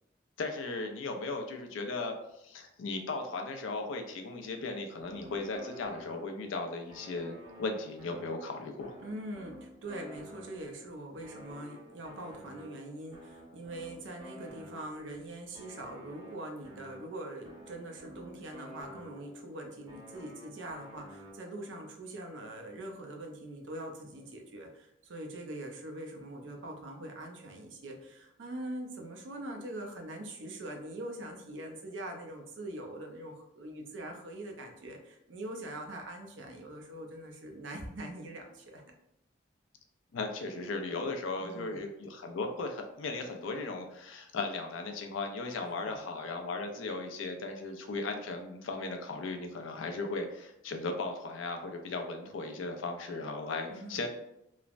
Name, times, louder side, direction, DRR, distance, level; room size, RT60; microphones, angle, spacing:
voice 1, 0.4-2.1 2.4-8.9 40.1-54.1, left 3 dB, 80° left, 4 dB, 0.4 m, -37 dB
sound 1, 5.0-6.5 6.9-10.8 11.2-15.1 15.5-19.5 19.9-21.7, equal, 20° right, 0.8 m, -51 dB
voice 2, 9.0-38.8 41.4-41.8 45.6-46.0 53.7-54.1, right 1 dB, 70° right, 3 dB, 0.5 m, -43 dB
3.1 x 2.0 x 2.4 m, 0.83 s
head